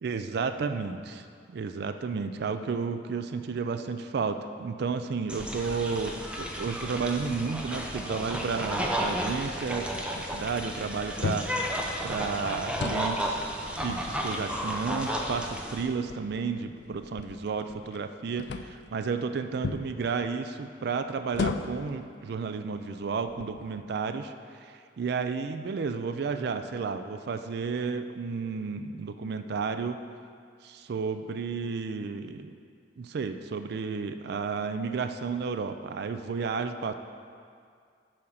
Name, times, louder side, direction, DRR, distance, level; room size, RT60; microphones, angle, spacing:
voice 1, 0.0-11.5 12.0-13.4 13.7-30.0 30.6-32.5 33.0-36.9, right 5 dB, 60° right, 9 dB, 0.4 m, -32 dB
sound 1, 5.3-15.8, equal, 5° right, 0.7 m, -33 dB
sound 2, 11.2-11.6 12.6-13.1 13.6-14.7 15.4-15.5 16.0-18.0 18.4-18.9 19.6-19.9 21.3-21.9 22.6-22.8 23.3-23.8, left 4 dB, 65° left, 0.4 m, -35 dB
8.4 x 5.0 x 5.7 m, 2.2 s
head